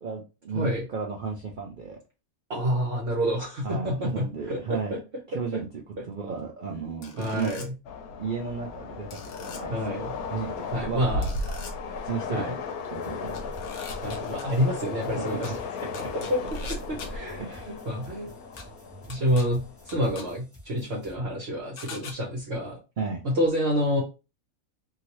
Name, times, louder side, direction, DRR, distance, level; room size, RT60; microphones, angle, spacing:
voice 1, 0.0-2.0 3.6-5.0 5.3-7.6 8.2-9.7 10.3-11.2 11.5-11.6 12.0-12.6 12.9-13.4 15.2-15.6 16.0-16.1 17.4-17.8 23.0-23.2, right 5 dB, 80° right, 0 dB, 0.4 m, -34 dB
voice 2, 0.5-0.8 2.5-5.0 5.5-5.6 6.0-6.1 7.2-7.7 9.7-10.1 10.7-11.3 12.3-12.5 14.0-15.5 16.3-17.4 17.7-18.3 19.1-22.8 23.2-24.0, equal, 50° right, -2 dB, 1.1 m, -28 dB
sound 1, 7.0-7.7 9.1-9.6 11.2-11.7 13.3-14.4 15.4-15.5 15.9-17.1 18.6-18.7 19.1-19.4 19.9-20.2 21.8-22.1, left 5 dB, 60° left, 0.6 m, -42 dB
Train, 7.9-20.1, left 4 dB, 85° left, 1.1 m, -35 dB
sound 2, 12.9-21.1, right 1 dB, 10° right, 1.1 m, -49 dB
2.8 x 2.8 x 2.9 m, 0.30 s
omnidirectional pair, 1.5 m